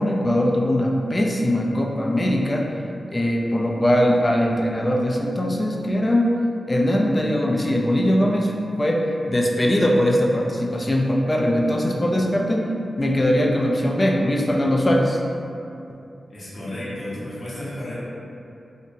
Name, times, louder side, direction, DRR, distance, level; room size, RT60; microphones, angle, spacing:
voice 1, 0.0-2.7 3.1-6.3 6.7-12.7 13.0-15.2, equal, 30° left, -1 dB, 0.4 m, -21 dB
voice 2, 16.3-17.9, left 1 dB, 65° left, -10 dB, 0.8 m, -32 dB
2.7 x 2.1 x 2.7 m, 2.6 s
cardioid pair, 45°, 0 cm